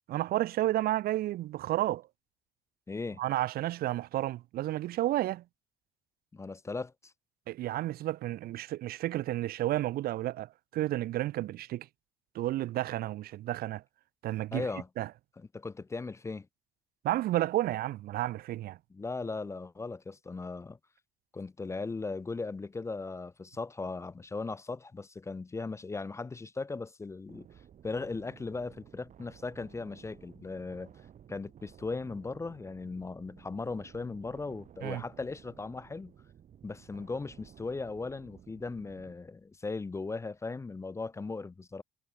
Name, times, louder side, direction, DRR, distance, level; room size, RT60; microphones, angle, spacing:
voice 1, 0.1-2.1 3.2-5.4 7.5-11.9 12.3-13.8 14.2-14.6 15.0-15.1 17.0-18.8 34.8-35.0, right 15 dB, 65° right, 0.6 m, -31 dB
voice 2, 2.9-3.2 6.3-7.1 14.5-14.9 15.4-16.5 18.9-20.8 21.3-27.5 27.8-30.9 31.3-36.1 36.6-41.8, left 3 dB, 15° left, 0.5 m, -38 dB
sound 1, 27.3-39.1, right 9 dB, 50° right, 2.0 m, -55 dB
cardioid pair, 110°, 17 cm